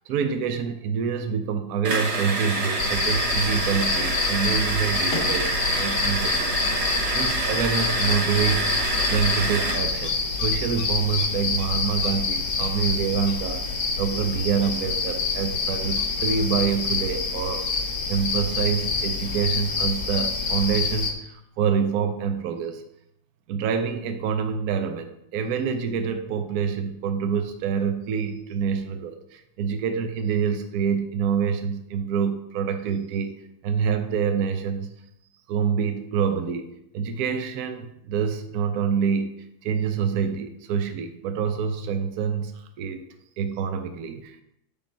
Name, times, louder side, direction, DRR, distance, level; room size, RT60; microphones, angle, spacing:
voice 1, 0.1-6.9 7.1-8.7 9.1-22.8 23.5-33.4 33.6-34.9 35.5-43.0 43.4-44.4, right 6 dB, 70° right, 6 dB, 0.9 m, -26 dB
sound 1, 1.8-9.9, right 2 dB, 40° right, 1.1 m, -27 dB
sound 2, 2.8-21.1, left 4 dB, 80° left, 1.9 m, -27 dB
7.2 x 5.2 x 4.4 m, 0.79 s
omnidirectional pair, 2.1 m